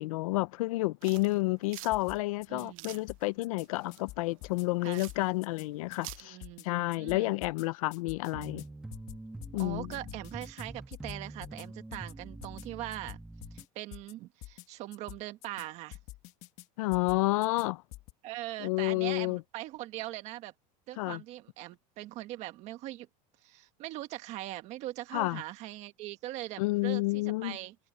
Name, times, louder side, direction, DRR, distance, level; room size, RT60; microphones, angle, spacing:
voice 1, 0.0-6.4 6.6-8.6 9.5-9.9 16.8-17.8 18.6-19.4 21.0-21.2 25.1-25.4 26.6-27.6, left 21 dB, 80° left, 0.7 m, -30 dB
sound 1, 1.0-6.2, right 20 dB, 75° right, 0.6 m, -49 dB
sound 2, 1.9-2.7 2.9-3.7 3.9-4.7 4.9-5.7 5.9-6.7 6.9-7.7 7.9-8.7 8.9-9.7 9.9-10.7 10.9-11.7 11.9-12.1 12.4-12.7 12.9-13.7 13.9-14.1 14.4-14.7 14.9-15.7 15.9-16.7 16.9-17.7 17.9-18.1, left 17 dB, 45° left, 1.6 m, -47 dB
voice 2, 2.5-3.0 4.8-5.0 6.2-7.4 9.6-13.2 13.5-16.0 18.2-20.5 20.9-23.1 23.4-27.7, right 16 dB, 40° right, 1.6 m, -41 dB
sound 3, 8.3-13.7, right 2 dB, 5° right, 1.2 m, -45 dB
supercardioid pair, 165°, 17 cm